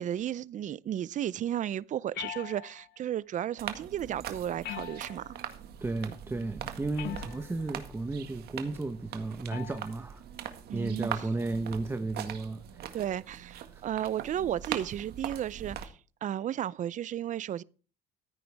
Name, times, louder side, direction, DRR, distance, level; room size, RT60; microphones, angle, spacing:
voice 1, 0.0-5.4 10.7-11.3 12.9-15.9 16.2-17.6, right 11 dB, 50° right, 0.6 m, -34 dB
sound 1, 2.1-3.0 4.6-5.5 7.0-7.6 9.5-9.9, left 13 dB, 80° left, 1.0 m, -41 dB
sound 2, 3.6-15.8, right 10 dB, 70° right, 1.9 m, -42 dB
voice 2, 5.8-10.2 10.7-13.0 13.7-13.8, right 3 dB, 15° right, 1.1 m, -34 dB
15.0 x 9.3 x 3.5 m
cardioid pair, 110°, 17 cm